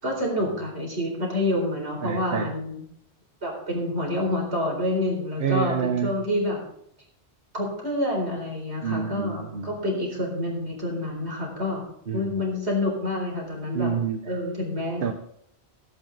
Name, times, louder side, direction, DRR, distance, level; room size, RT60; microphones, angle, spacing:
voice 1, 0.0-2.8 3.4-6.6 7.5-11.8 12.1-13.9 14.2-15.0, left 1 dB, 85° right, -1 dB, 4.5 m, -28 dB
voice 2, 2.0-2.5 5.4-6.1 8.8-9.8 12.1-12.3 13.7-14.2 15.0-15.1, right 6 dB, 55° right, 6 dB, 1.1 m, -27 dB
16.5 x 9.2 x 4.1 m, 0.70 s
omnidirectional pair, 1.1 m